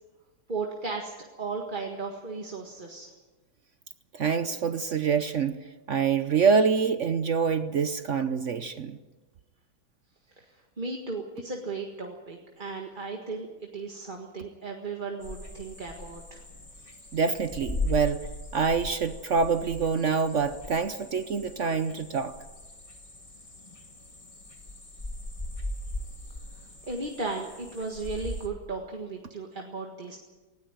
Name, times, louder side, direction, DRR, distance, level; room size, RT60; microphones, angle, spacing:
voice 1, 0.5-3.1 10.3-16.4 26.5-30.2, right 3 dB, 25° right, 1.7 m, -36 dB
voice 2, 4.1-9.0 17.1-22.4, right 5 dB, 60° right, 0.8 m, -26 dB
sound 1, 15.2-28.5, left 2 dB, 15° left, 1.7 m, -39 dB
19.0 x 18.0 x 9.1 m
omnidirectional pair, 2.2 m